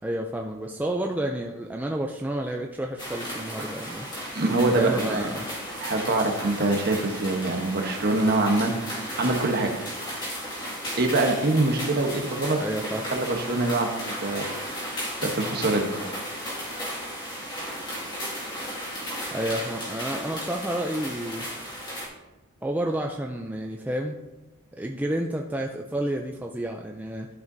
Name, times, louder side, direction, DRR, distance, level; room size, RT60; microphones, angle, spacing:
voice 1, 0.0-4.1 4.7-5.5 12.6-13.0 19.3-21.4 22.6-24.2 24.8-27.3, right 1 dB, 5° right, 1 dB, 0.3 m, -30 dB
sound 1, 3.0-22.1, equal, 20° left, 2.1 m, -35 dB
voice 2, 4.3-5.2 5.8-9.7 11.0-12.6 13.1-14.5 14.7-14.9 15.2-15.9, right 2 dB, 45° right, 3 dB, 1.0 m, -24 dB
12.5 x 5.1 x 2.7 m, 1.1 s
head